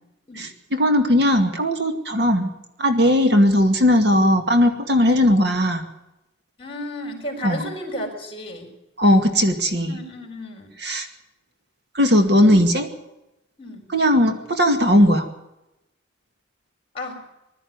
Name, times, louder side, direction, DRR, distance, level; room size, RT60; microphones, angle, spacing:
voice 1, 0.4-2.5 2.8-5.8 7.4-7.6 9.0-10.0 10.8-11.1 11.9-12.9 13.9-15.3, equal, 55° right, 6 dB, 2.2 m, -18 dB
voice 2, 6.6-8.7 9.9-10.7 12.4-12.5 13.6-13.9 16.9-17.2, left 1 dB, 30° left, 5 dB, 4.5 m, -33 dB
21.0 x 13.0 x 9.6 m, 0.91 s
head